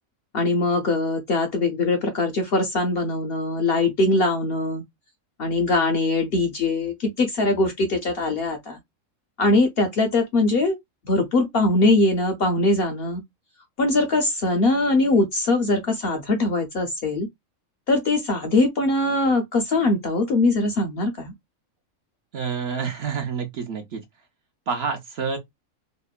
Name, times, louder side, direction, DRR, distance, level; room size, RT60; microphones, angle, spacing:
voice 1, 0.3-4.8 5.4-8.8 9.4-10.8 11.1-13.2 13.8-17.3 17.9-21.3, left 2 dB, 60° left, 0.6 m, -22 dB
voice 2, 22.3-24.0 24.7-25.4, right 6 dB, 60° right, 0.7 m, -28 dB
2.9 x 2.1 x 2.3 m
omnidirectional pair, 1.5 m